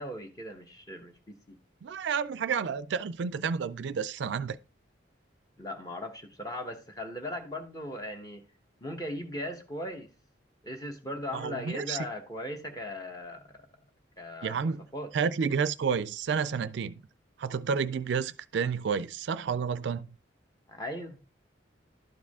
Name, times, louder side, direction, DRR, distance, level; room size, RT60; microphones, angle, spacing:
voice 1, 0.0-1.6 5.6-8.4 8.8-10.1 10.6-13.7 14.2-15.1 20.7-21.2, left 1 dB, 20° left, 1.1 m, -38 dB
voice 2, 1.8-4.6 11.3-12.0 14.4-14.8 15.1-17.0 17.4-20.1, right 6 dB, 65° right, 0.4 m, -30 dB
11.5 x 4.8 x 3.6 m
head